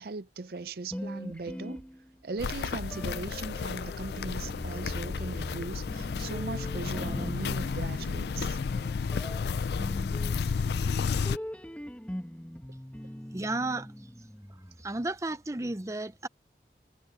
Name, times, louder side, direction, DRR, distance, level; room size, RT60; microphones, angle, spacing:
voice 1, 0.0-1.8 2.2-8.6, right 3 dB, 60° right, 0.5 m, -39 dB
sound 1, 0.9-2.4 2.9-15.1, equal, 5° left, 1.5 m, -42 dB
Walk footsteps, 2.4-11.4, left 5 dB, 70° left, 0.4 m, -32 dB
voice 2, 13.3-13.9 14.8-16.3, right 2 dB, 15° right, 0.6 m, -33 dB
head